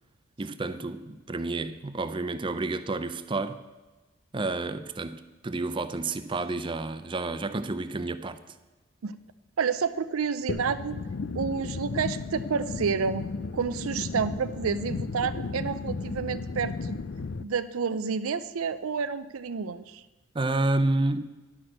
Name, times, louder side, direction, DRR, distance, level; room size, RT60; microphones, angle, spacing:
voice 1, 0.4-3.6 4.3-8.4 20.3-21.3, right 2 dB, 25° right, 11 dB, 0.4 m, -30 dB
voice 2, 9.6-11.0 11.3-13.3 13.5-17.0 17.4-20.0, right 6 dB, 85° right, 12 dB, 0.5 m, -29 dB
sound 1, 10.5-17.4, left 4 dB, 55° left, 0.4 m, -34 dB
11.0 x 6.1 x 7.6 m, 1.2 s
head